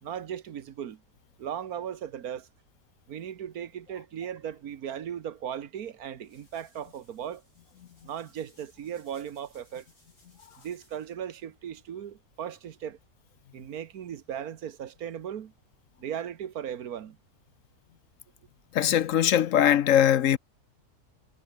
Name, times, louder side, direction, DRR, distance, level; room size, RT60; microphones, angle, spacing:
voice 1, 0.0-1.0 1.4-2.5 3.1-7.4 8.0-9.9 10.6-13.0 13.5-15.5 16.0-17.2, right 9 dB, 85° right, 1.6 m, -37 dB
sound 1, 5.8-11.2, left 2 dB, 85° left, 8.7 m, -63 dB
voice 2, 18.7-20.4, left 10 dB, 65° left, 1.1 m, -21 dB
omnidirectional pair, 1.5 m